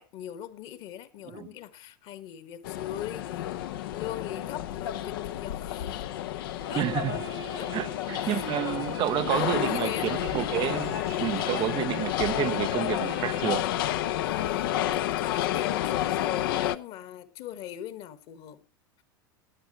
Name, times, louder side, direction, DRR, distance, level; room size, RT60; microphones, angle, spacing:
voice 1, 0.0-3.5 3.9-6.0 6.7-6.9 7.5-7.7 8.2-8.3 9.2-10.1 14.2-18.6, left 11 dB, 55° left, 1.6 m, -39 dB
sound 1, 2.6-16.8, left 12 dB, 70° left, 0.7 m, -30 dB
sound 2, 6.5-14.3, right 7 dB, 90° right, 2.6 m, -45 dB
voice 2, 6.7-7.2 7.7-13.6, right 14 dB, 40° right, 0.5 m, -30 dB
17.5 x 10.5 x 3.1 m
hypercardioid pair, 95°, 12 cm